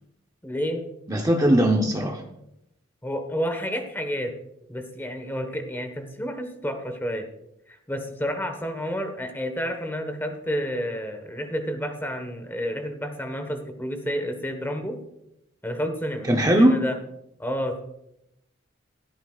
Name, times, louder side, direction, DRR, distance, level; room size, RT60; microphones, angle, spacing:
voice 1, 0.4-0.9 3.0-4.3 4.7-7.3 7.7-15.0 15.6-16.3 16.6-17.0 17.4-17.8, equal, 10° left, 6 dB, 1.2 m, -30 dB
voice 2, 1.1-2.2 16.3-16.8, right 1 dB, 15° right, 2 dB, 0.8 m, -19 dB
16.0 x 13.5 x 2.4 m, 0.82 s
head